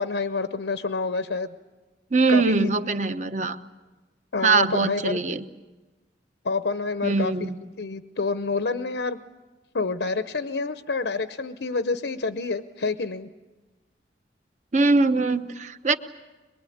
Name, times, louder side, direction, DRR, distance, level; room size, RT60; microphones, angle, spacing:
voice 1, 0.0-1.5 2.3-2.7 4.3-5.2 6.4-7.3 7.8-9.2 9.7-13.3, left 4 dB, 80° left, 10 dB, 0.8 m, -28 dB
voice 2, 2.1-3.6 4.4-5.4 7.0-7.6 14.7-16.0, right 3 dB, 40° right, 9 dB, 1.0 m, -22 dB
23.5 x 23.0 x 8.6 m, 1.2 s
head